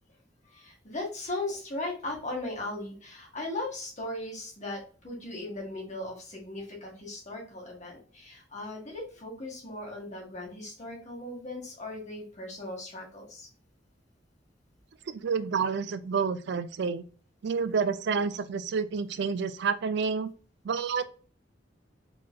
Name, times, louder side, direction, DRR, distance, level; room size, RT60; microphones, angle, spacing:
voice 1, 0.5-13.5, left 2 dB, 40° left, 0 dB, 1.9 m, -38 dB
voice 2, 15.1-17.0 17.4-20.3 20.6-21.0, right 5 dB, 65° right, 13 dB, 0.4 m, -29 dB
4.6 x 4.0 x 2.3 m, 0.38 s
head